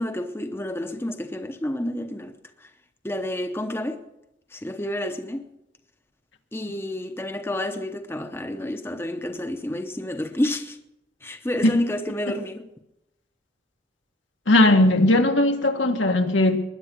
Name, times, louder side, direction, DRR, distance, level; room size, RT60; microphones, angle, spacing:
voice 1, 0.0-2.7 3.0-4.0 4.5-5.5 6.5-10.8 11.2-12.7, left 1 dB, 15° left, 0.8 m, -29 dB
voice 2, 14.5-16.6, left 1 dB, 85° left, 1.6 m, -18 dB
20.5 x 10.5 x 6.2 m
head